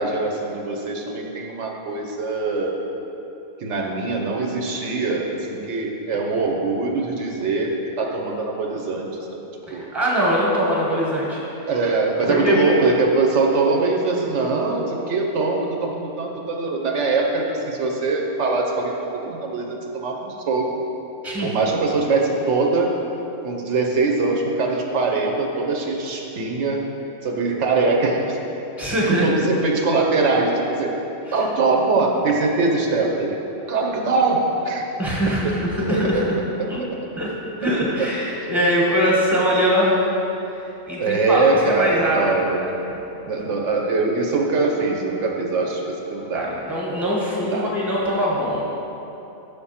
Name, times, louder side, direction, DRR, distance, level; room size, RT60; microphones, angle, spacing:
voice 1, 0.0-2.7 3.6-9.4 9.7-9.9 11.7-20.8 21.4-22.9 23.4-26.8 27.2-28.4 29.1-30.9 31.3-33.4 33.7-34.8 35.9-36.2 36.6-36.9 38.0-38.1 38.6-38.7 41.0-42.7 43.3-45.8 46.1-46.5 47.4-47.7, right 3 dB, 75° right, 1 dB, 1.0 m, -22 dB
voice 2, 9.7-11.4 12.3-12.6 21.2-21.5 28.8-29.4 31.3-31.4 35.0-36.3 36.7-36.8 37.2-37.3 37.6-40.1 40.9-41.4 41.7-42.2 42.9-43.0 46.3-48.6, equal, ahead, -5 dB, 1.0 m, -22 dB
6.7 x 3.6 x 5.6 m, 3.0 s
omnidirectional pair, 1.2 m